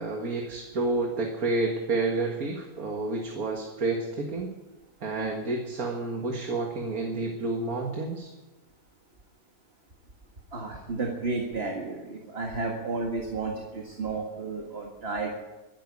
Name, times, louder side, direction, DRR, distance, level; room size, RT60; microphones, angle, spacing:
voice 1, 0.0-4.5 5.0-8.3, right 3 dB, 70° right, 1 dB, 2.2 m, -29 dB
voice 2, 10.5-15.3, right 3 dB, 40° right, 1 dB, 2.1 m, -32 dB
13.0 x 11.0 x 9.9 m, 1.1 s
omnidirectional pair, 1.6 m